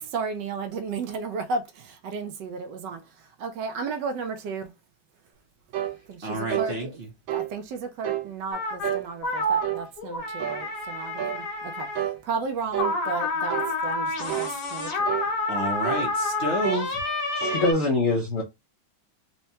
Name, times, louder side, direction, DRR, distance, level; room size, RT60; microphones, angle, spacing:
voice 1, 0.0-3.0 3.4-4.7 6.1-7.0 7.3-11.9 12.2-15.1, right 4 dB, 70° right, 1.2 m, -33 dB
sound 1, 5.7-6.0 6.5-6.7 7.3-7.5 8.0-8.3 8.8-9.1 9.6-9.9 10.4-10.6 11.2-11.4 12.0-12.2 12.7-13.0 13.5-13.7 14.3-14.5 15.1-15.3 15.8-16.1 16.6-16.9 17.4-17.6, right 12 dB, 90° right, 1.5 m, -29 dB
voice 2, 6.2-7.1 15.5-17.0, equal, 50° right, 0.8 m, -30 dB
sound 2, 8.5-8.9 9.2-12.0 12.8-17.7, left 2 dB, 60° left, 1.5 m, -29 dB
voice 3, 17.3-18.4, left 2 dB, 75° left, 0.6 m, -23 dB
4.3 x 2.2 x 2.7 m
omnidirectional pair, 2.2 m